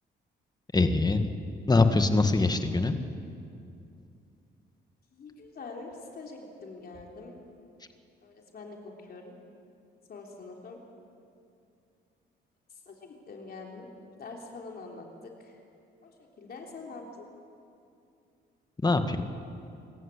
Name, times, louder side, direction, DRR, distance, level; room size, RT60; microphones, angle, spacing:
voice 1, 0.7-1.3 1.7-3.0 18.8-19.2, left 3 dB, 20° left, 8 dB, 1.6 m, -23 dB
voice 2, 5.1-7.4 8.2-9.3 10.1-10.8 12.8-13.9 14.2-15.6 16.0-17.3, left 3 dB, 50° left, 0 dB, 3.4 m, -44 dB
25.0 x 14.0 x 8.4 m, 2.6 s
cardioid pair, 90°, 20 cm